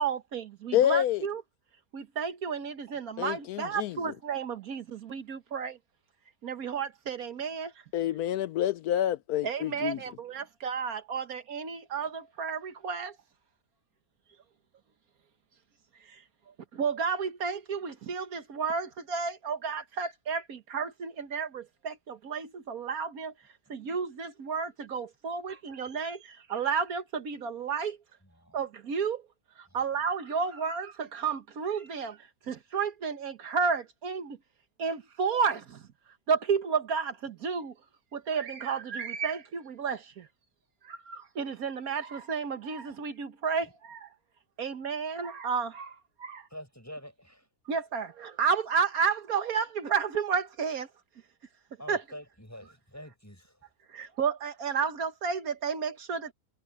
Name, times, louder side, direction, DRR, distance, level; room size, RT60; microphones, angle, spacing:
voice 1, 0.0-1.4 1.9-5.8 6.4-7.7 9.4-13.2 16.0-16.2 16.7-23.3 23.7-28.0 28.5-29.3 29.6-34.4 34.8-35.8 36.3-37.7 38.1-40.3 40.8-44.1 44.6-46.5 47.7-50.9 51.9-52.0 53.9-56.3, right 6 dB, 70° right, 1.6 m, -32 dB
voice 2, 0.7-1.2 3.2-3.9 7.9-10.0, left 11 dB, 80° left, 1.1 m, -27 dB
voice 3, 28.2-28.6 29.7-29.9 43.6-43.7 46.5-47.5 51.8-53.7, equal, 10° left, 7.9 m, -47 dB
omnidirectional pair, 1.6 m